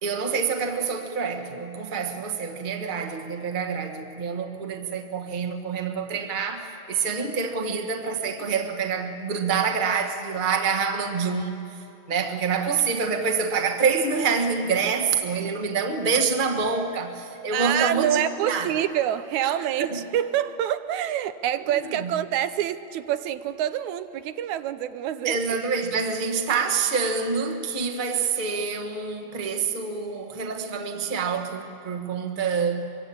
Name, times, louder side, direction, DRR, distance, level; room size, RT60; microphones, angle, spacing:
voice 1, 0.0-11.8 12.1-18.7 19.4-19.5 19.9-20.0 22.0-22.1 25.2-32.8, right 5 dB, 25° right, 1.0 m, -26 dB
voice 2, 17.5-25.4, right 11 dB, 85° right, 2.1 m, -26 dB
23.5 x 22.5 x 8.6 m
omnidirectional pair, 3.3 m